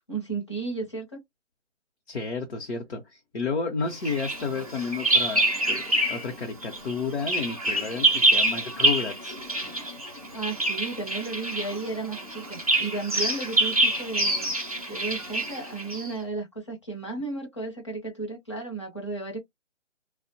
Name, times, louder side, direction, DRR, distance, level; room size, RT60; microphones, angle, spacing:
voice 1, 0.1-1.2 10.3-14.5 14.9-19.4, right 3 dB, 25° left, 0.6 m, -34 dB
voice 2, 2.1-9.4, left 5 dB, 55° left, 0.8 m, -31 dB
Bird vocalization bird call bird song, 4.0-6.3 6.6-16.1, right 1 dB, 30° right, 0.4 m, -26 dB
2.7 x 2.1 x 2.7 m
hypercardioid pair, 170°, 37 cm